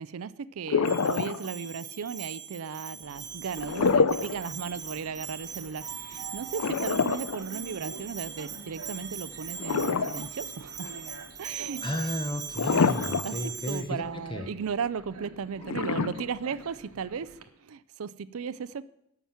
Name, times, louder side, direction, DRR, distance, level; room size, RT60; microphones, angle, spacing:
voice 1, 0.0-11.0 11.4-11.8 13.2-18.8, right 6 dB, 65° right, 16 dB, 0.4 m, -36 dB
sound 1, 0.7-1.7 3.6-4.4 4.8-4.9 6.6-8.1 9.6-10.5 10.9-11.0 12.5-13.5 13.8-13.9 15.6-16.7, left 5 dB, 70° left, 0.6 m, -26 dB
Bell, 0.8-13.8, right 7 dB, 15° right, 1.4 m, -41 dB
Train, 3.0-17.4, right 4 dB, 85° right, 1.1 m, -47 dB
voice 2, 11.8-14.0 14.3-14.5, left 1 dB, 20° left, 8 dB, 1.1 m, -33 dB
13.0 x 5.9 x 7.2 m, 0.80 s
head